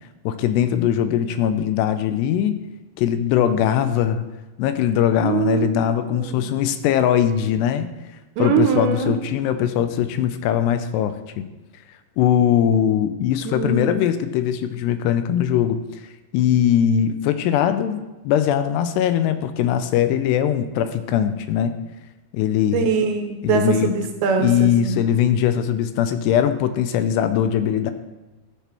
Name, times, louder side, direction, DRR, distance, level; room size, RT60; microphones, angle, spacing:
voice 1, 0.3-2.5 3.0-4.3 4.6-7.9 8.4-11.5 12.2-15.8 16.3-21.7 22.3-22.9 23.4-23.9 24.4-27.9, left 9 dB, 85° left, 10 dB, 2.7 m, -20 dB
voice 2, 5.2-5.9 6.1-6.5 8.4-9.1 13.5-14.0 22.7-25.0, right 6 dB, 75° right, 4 dB, 2.6 m, -22 dB
13.5 x 6.8 x 4.4 m, 1.1 s
omnidirectional pair, 4.9 m